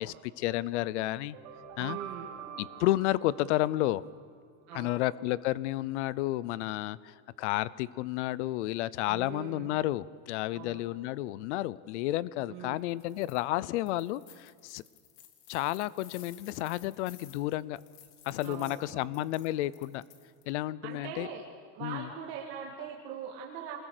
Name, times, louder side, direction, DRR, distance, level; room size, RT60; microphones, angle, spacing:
voice 1, 0.0-1.4 1.8-2.0 2.6-4.0 4.7-14.8 15.5-17.8 18.2-20.0 20.5-21.3 21.8-22.1, left 16 dB, 50° left, 20 dB, 0.7 m, -31 dB
sound 1, 1.2-4.3, right 9 dB, 65° right, 6.1 m, -46 dB
voice 2, 1.8-2.4 4.7-5.0 9.1-9.8 10.5-10.8 12.5-12.8 18.4-19.3 20.8-21.4 21.7-23.8, right 8 dB, 45° right, -1 dB, 2.4 m, -42 dB
sound 2, 12.9-13.4 13.8-20.5, left 10 dB, 80° left, 2.8 m, -55 dB
26.5 x 20.5 x 6.7 m, 2.1 s
supercardioid pair, 175°, 46 cm